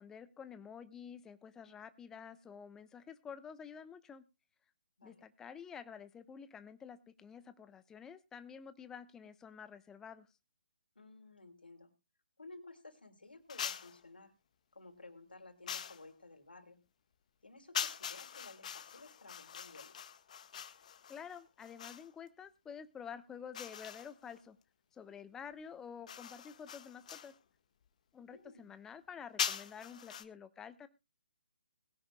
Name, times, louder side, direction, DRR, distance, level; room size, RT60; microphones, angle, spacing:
voice 1, 0.0-4.2 5.0-10.3 21.1-24.6 24.9-27.3 28.1-30.9, left 7 dB, 10° left, 12 dB, 1.0 m, -50 dB
voice 2, 11.0-11.9 12.4-14.3 14.7-16.8 17.4-20.0 28.2-28.7, left 3 dB, 85° left, 5 dB, 3.7 m, -55 dB
sound 1, 13.5-14.0 15.7-16.1 17.7-22.1 23.5-24.4 26.1-27.4 29.4-30.2, left 8 dB, 45° left, 1.4 m, -42 dB
21.5 x 10.5 x 2.2 m, 0.28 s
figure-of-eight pair, 145°, 5 cm